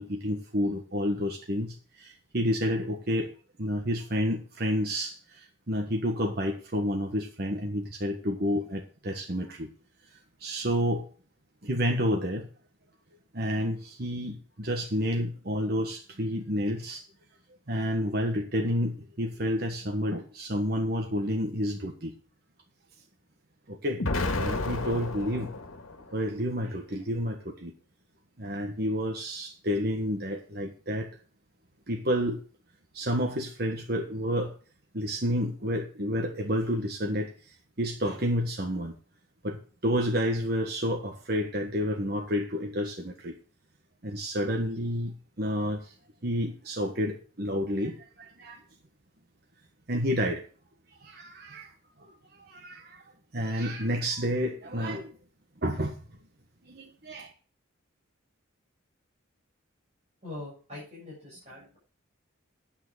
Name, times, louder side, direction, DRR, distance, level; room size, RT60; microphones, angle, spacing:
voice 1, 0.0-3.3 3.6-9.7 10.4-11.1 11.6-12.5 13.3-17.0 17.7-22.1 23.7-24.0 24.4-25.5 26.1-27.7 28.4-31.2 31.9-32.4 32.9-34.5 34.9-38.9 39.4-43.4 44.0-45.9 46.2-48.6 49.9-50.5 51.0-51.7 52.0-53.0 53.3-55.2 55.6-56.0 56.7-57.3, equal, 50° right, 2 dB, 1.4 m, -30 dB
Explosion, 24.0-26.1, left 2 dB, 85° left, 1.7 m, -31 dB
voice 2, 60.2-61.8, left 2 dB, 30° right, -7 dB, 7.3 m, -42 dB
9.7 x 8.9 x 4.9 m, 0.39 s
head